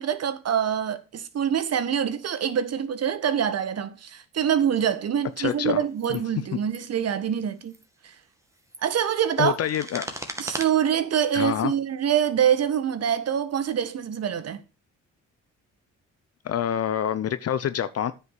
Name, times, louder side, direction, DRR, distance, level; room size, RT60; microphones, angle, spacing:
voice 1, 0.0-7.7 8.0-8.1 8.8-9.5 10.4-14.6, right 9 dB, 55° right, 1.5 m, -25 dB
voice 2, 5.4-5.8 6.1-6.2 9.4-10.1 11.3-11.7 16.4-18.1, left 9 dB, 55° left, 0.7 m, -26 dB
sound 1, 5.4-5.5 6.0-6.2 6.6-6.8 7.6-7.8 8.4-10.6, right 1 dB, 10° right, 2.0 m, -38 dB
9.4 x 5.7 x 6.6 m
cardioid pair, 90°, 30 cm